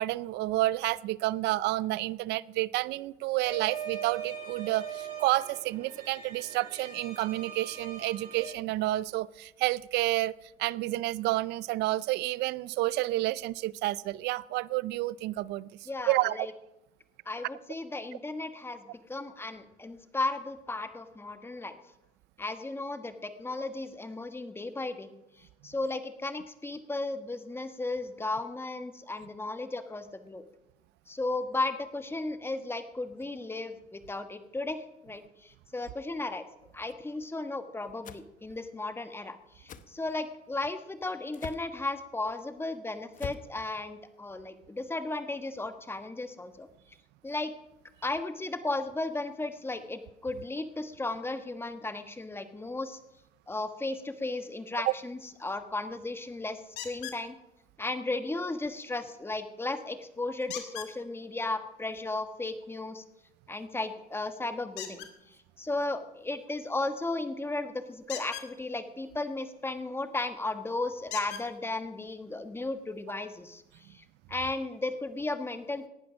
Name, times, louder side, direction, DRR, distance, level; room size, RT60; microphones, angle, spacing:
voice 1, 0.0-10.3 10.6-15.7 16.1-16.4, right 17 dB, 85° right, 21 dB, 0.5 m, -30 dB
sound 1, 3.4-8.5, right 8 dB, 50° right, 7.1 m, -41 dB
voice 2, 15.9-16.5 17.2-21.8 22.4-30.4 31.1-36.4 36.7-46.7 47.2-47.5 48.0-53.0 53.5-57.4 57.8-63.0 63.5-65.1 65.6-73.6 73.9-75.9, left 2 dB, 15° left, 9 dB, 1.3 m, -35 dB
sound 2, 38.0-38.3 39.7-39.9 41.3-41.7 43.1-43.5, left 8 dB, 50° left, 0.9 m, -42 dB
sound 3, 56.8-57.2 60.5-60.9 64.7-65.1 68.0-68.5 70.1-70.2 71.1-71.4 72.4-72.5 73.0-73.1, left 10 dB, 85° left, 2.2 m, -39 dB
18.0 x 10.5 x 6.2 m, 0.95 s
cardioid pair, 110°, 17 cm